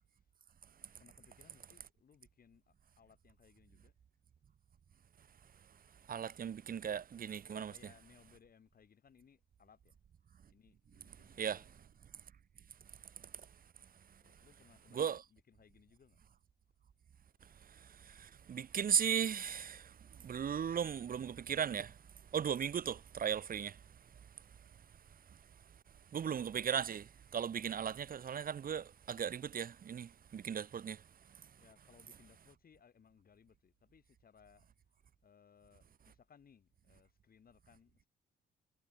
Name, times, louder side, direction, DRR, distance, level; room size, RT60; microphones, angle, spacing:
voice 1, 1.0-3.9 7.4-10.0 10.5-11.9 14.2-16.2 31.6-34.7 35.2-38.1, left 7 dB, 50° left, 4.7 m, -65 dB
voice 2, 6.1-7.7 11.4-11.6 14.9-15.2 18.1-19.9 20.2-21.9 22.3-23.8 26.1-31.0, right 8 dB, 45° right, 1.1 m, -37 dB
cardioid pair, 90°, 20 cm